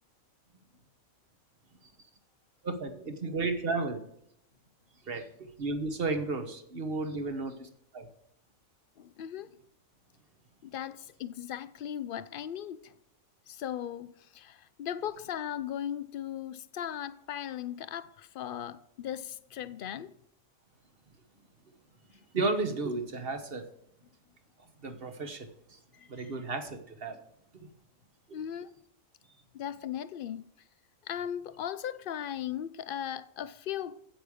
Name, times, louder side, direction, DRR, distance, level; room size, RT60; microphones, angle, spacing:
voice 1, 2.6-4.0 5.1-7.7 7.9-8.1 22.3-23.7 24.8-25.8 26.1-27.2 28.3-28.4, right 3 dB, 45° right, 1.4 m, -33 dB
voice 2, 9.0-9.6 10.6-12.9 13.5-20.1 25.9-26.3 28.3-28.7 29.5-30.5 31.0-34.0, left 10 dB, 65° left, 0.5 m, -38 dB
8.8 x 8.6 x 4.9 m
omnidirectional pair, 1.4 m